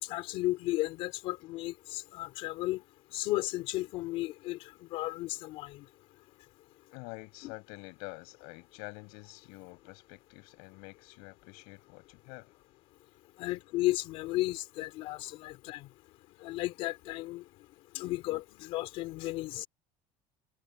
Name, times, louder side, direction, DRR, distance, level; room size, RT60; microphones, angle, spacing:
voice 1, 0.0-2.8 3.1-5.9 7.4-7.5 13.4-15.9 16.4-17.4 17.9-19.7, left 18 dB, 60° left, 3.6 m, -34 dB
voice 2, 6.9-12.5 13.5-13.6, left 30 dB, 75° left, 7.0 m, -47 dB
cardioid pair, 165°, 11 cm